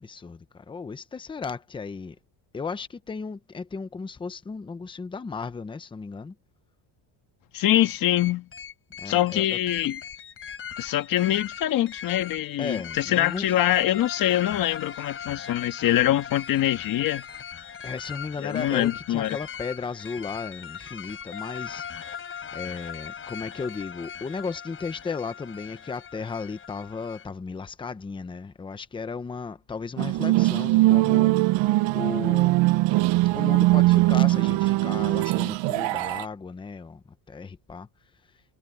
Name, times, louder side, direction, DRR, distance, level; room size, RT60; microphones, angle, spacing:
voice 1, 0.0-2.2 2.5-6.4 9.0-9.6 12.6-13.5 17.8-32.6 33.3-37.9, left 5 dB, 10° left, 0.8 m, -35 dB
voice 2, 7.5-8.5 9.0-10.0 10.8-17.2 18.4-19.3, left 13 dB, 45° left, 1.6 m, -24 dB
sound 1, 7.8-27.3, left 7 dB, 25° left, 4.7 m, -40 dB
sound 2, 30.0-36.2, right 19 dB, 65° right, 0.8 m, -21 dB
cardioid pair, 165°, 48 cm